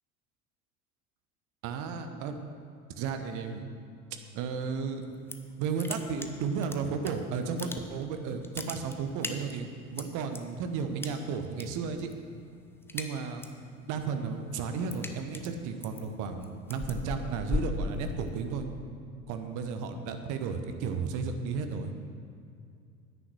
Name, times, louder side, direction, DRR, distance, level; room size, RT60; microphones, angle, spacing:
voice 1, 1.6-2.3 3.0-3.6 4.1-5.0 5.6-12.1 12.9-13.4 13.9-18.7 19.3-21.9, right 5 dB, 45° right, 7 dB, 1.1 m, -33 dB
sound 1, 5.0-5.5 5.8-7.1 7.4-8.1 8.4-10.4 11.0-11.6 11.9-12.3 12.6-13.6 14.0-18.5, left 3 dB, 5° left, 0.7 m, -37 dB
9.9 x 9.5 x 6.2 m, 2.3 s
figure-of-eight pair, 70°, 43 cm